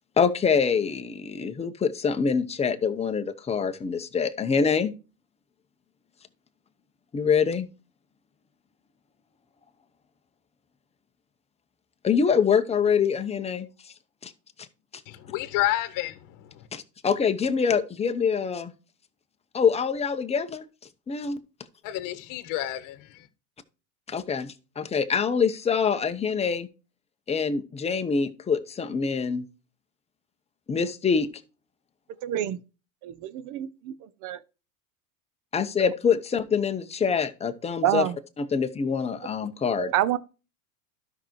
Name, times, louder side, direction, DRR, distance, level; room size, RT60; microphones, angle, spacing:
voice 1, 0.2-4.9 7.1-7.7 12.0-13.7 14.2-14.3 16.7-18.7 19.5-20.6 21.1-21.4 24.1-26.7 27.3-29.4 30.7-31.3 35.5-38.1 38.4-39.9, left 6 dB, 15° left, 0.9 m, -25 dB
voice 2, 15.1-16.7 21.8-23.3, left 15 dB, 45° left, 1.3 m, -30 dB
voice 3, 32.2-32.6 33.0-33.9 34.2-34.4 37.8-38.2 39.8-40.2, right 12 dB, 45° right, 0.8 m, -27 dB
12.0 x 5.9 x 3.0 m
supercardioid pair, 120°, 43 cm